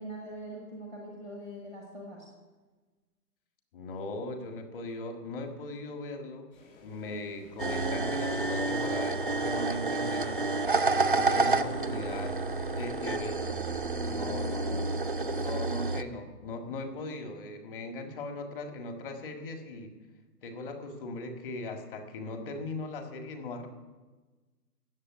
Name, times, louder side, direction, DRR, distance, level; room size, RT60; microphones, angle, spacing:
voice 1, 0.0-2.3, right 1 dB, 5° left, -2 dB, 0.8 m, -42 dB
voice 2, 3.7-6.5 6.8-10.4 11.1-12.4 12.7-14.9 15.3-19.9 20.4-23.7, left 2 dB, 35° left, 4 dB, 1.9 m, -39 dB
sound 1, 6.5-15.7, left 5 dB, 55° left, 4.8 m, -55 dB
sound 2, 7.6-16.0, right 3 dB, 35° right, 0.4 m, -29 dB
15.5 x 7.2 x 9.5 m, 1.3 s
hypercardioid pair, 165°, 48 cm